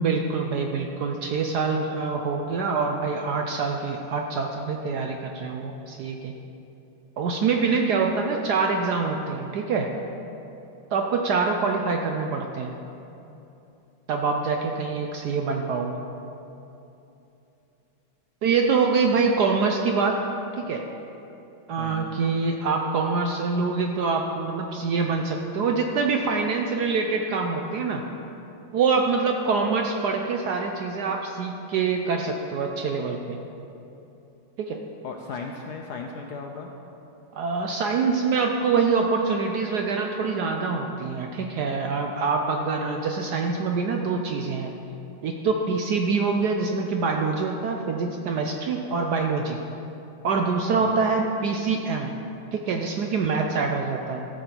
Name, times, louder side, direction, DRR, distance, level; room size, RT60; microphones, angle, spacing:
voice 1, 0.0-6.3 7.2-9.9 10.9-12.7 14.1-16.0 18.4-20.2 20.5-20.8 21.7-28.0 28.7-33.4 34.6-34.8 37.3-44.7 45.2-49.6 50.2-52.1 52.5-54.3, right 4 dB, 70° right, 3 dB, 1.0 m, -25 dB
voice 2, 21.8-22.1 35.0-36.7 50.8-51.0, left 4 dB, 70° left, 2 dB, 1.0 m, -36 dB
14.5 x 7.0 x 4.4 m, 2.9 s
omnidirectional pair, 2.3 m